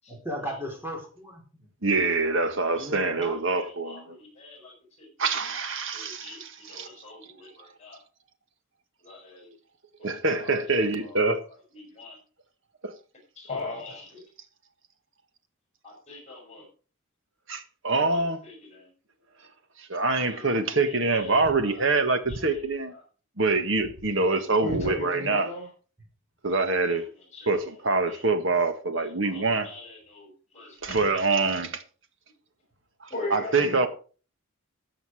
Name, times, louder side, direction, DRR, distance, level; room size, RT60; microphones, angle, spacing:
voice 1, 0.1-1.7 2.8-3.4, equal, 10° right, 4.5 m, -36 dB
voice 2, 1.8-4.2 5.2-6.9 10.0-11.4 12.8-12.9 17.5-18.4 19.8-22.9 23.4-25.5 26.4-27.0 27.5-29.7 30.8-31.8 33.0-33.9, right 3 dB, 60° right, 1.7 m, -25 dB
voice 3, 3.0-5.1 5.9-8.0 9.0-9.5 10.0-10.1 10.4-11.2 11.7-12.2 13.3-14.2 15.8-16.7 18.1-18.9 20.2-20.5 20.7-22.0 22.3-23.0 24.6-25.7 26.9-27.8 28.0-28.5 29.0-31.4 33.1-33.9, left 2 dB, 30° left, 6.5 m, -41 dB
14.0 x 8.0 x 4.9 m
head